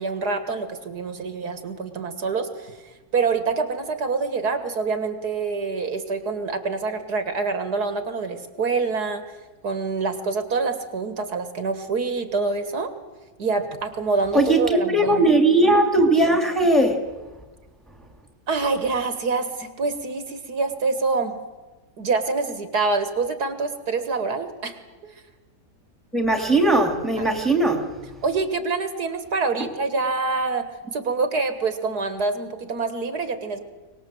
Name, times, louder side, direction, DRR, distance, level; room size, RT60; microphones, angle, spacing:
voice 1, 0.0-2.7 3.1-9.2 9.6-12.9 13.4-15.3 18.5-21.4 22.0-24.8 25.0-25.1 27.2-27.3 28.2-33.6, right 4 dB, 70° right, 9 dB, 2.2 m, -26 dB
voice 2, 14.9-16.9 26.1-27.8, right 2 dB, ahead, 5 dB, 2.5 m, -18 dB
24.0 x 20.0 x 7.8 m, 1.2 s
omnidirectional pair, 1.8 m